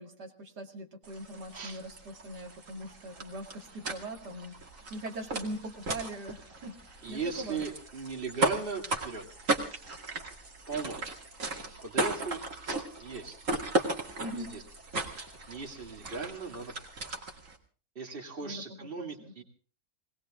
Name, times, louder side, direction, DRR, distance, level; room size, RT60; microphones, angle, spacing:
voice 1, 0.0-7.6 14.2-14.6 18.4-19.3, right 1 dB, 85° right, 2 dB, 2.7 m, -41 dB
sound 1, 1.0-17.6, right 2 dB, 50° right, 2.6 m, -36 dB
voice 2, 7.0-9.2 10.7-11.0 11.8-12.4 13.0-13.4 14.3-14.6 15.1-16.7 18.0-19.4, right 5 dB, 35° right, 2 dB, 2.5 m, -37 dB
20.5 x 19.0 x 3.7 m, 0.40 s
omnidirectional pair, 1.7 m